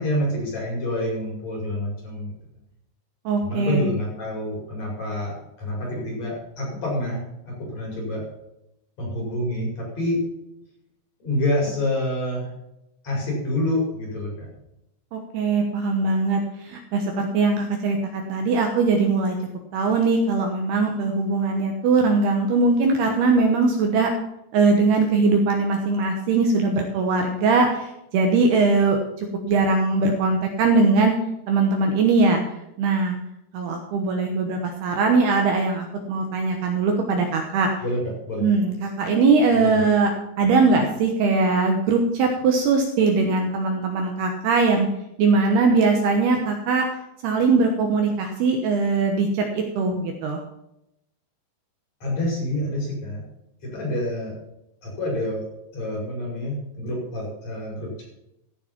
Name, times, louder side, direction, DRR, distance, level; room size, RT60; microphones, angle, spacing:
voice 1, 0.0-2.3 3.4-8.3 9.0-10.3 11.2-12.5 13.0-14.5 37.8-38.5 39.5-39.8 52.0-53.2 53.6-54.3 54.8-55.4 55.7-58.0, left 1 dB, 35° left, -3 dB, 6.6 m, -27 dB
voice 2, 3.3-3.9 15.1-19.4 19.7-24.1 24.5-31.1 31.5-32.4 32.8-33.2 33.5-37.7 38.4-40.1 40.4-44.9 45.2-46.9 47.2-50.4, right 3 dB, 70° right, 3 dB, 2.8 m, -21 dB
14.5 x 7.4 x 5.8 m, 0.84 s
omnidirectional pair, 5.3 m